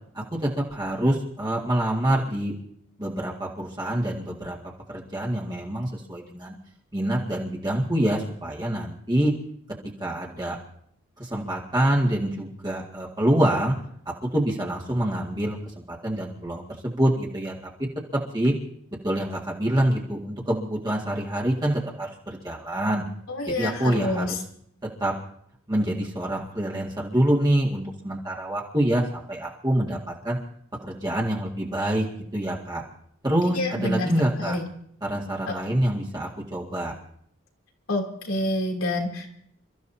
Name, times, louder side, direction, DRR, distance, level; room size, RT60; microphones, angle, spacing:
voice 1, 0.1-2.5 3.0-4.6 4.9-6.5 6.9-9.3 10.0-10.6 11.2-13.7 14.3-17.5 18.3-18.5 19.0-23.0 23.5-24.4 25.0-25.1 25.7-30.4 30.8-32.0 32.3-32.8 33.2-34.6 35.0-36.9, right 1 dB, 20° right, -4 dB, 2.0 m, -26 dB
voice 2, 23.3-24.4 33.5-34.1 34.4-34.7 35.5-35.6 37.9-39.3, left 1 dB, 85° left, 1 dB, 3.2 m, -27 dB
29.0 x 14.0 x 2.8 m, 0.68 s
head